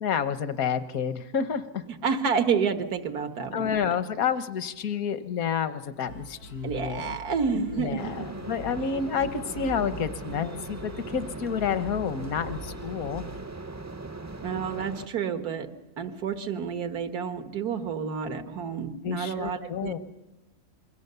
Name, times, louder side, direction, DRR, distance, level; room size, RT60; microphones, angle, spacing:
voice 1, 0.0-1.8 3.5-7.2 7.7-13.2 19.0-20.0, left 7 dB, 70° left, 13 dB, 1.4 m, -29 dB
voice 2, 1.9-3.8 6.6-8.4 14.4-20.1, right 6 dB, 90° right, 9 dB, 1.9 m, -30 dB
sound 1, 6.0-13.4, equal, 85° left, 7.4 m, -44 dB
sound 2, 8.0-15.1, right 3 dB, 25° right, 0.4 m, -39 dB
27.0 x 22.0 x 6.8 m, 1.1 s
omnidirectional pair, 1.6 m